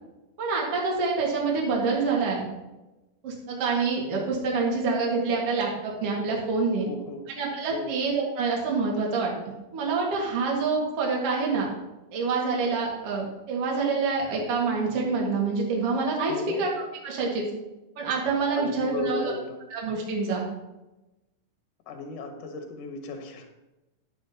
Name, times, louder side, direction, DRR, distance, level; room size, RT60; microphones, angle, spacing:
voice 1, 0.4-2.5 3.2-6.9 7.4-11.7 12.1-16.7 17.0-17.5 18.0-19.3 19.7-20.4, right 4 dB, 50° right, -2 dB, 2.6 m, -26 dB
voice 2, 6.8-7.2 7.7-7.9 16.3-16.6 18.6-19.6 21.9-23.4, left 3 dB, 60° left, 4 dB, 2.1 m, -35 dB
12.0 x 8.1 x 2.9 m, 1.0 s
omnidirectional pair, 3.8 m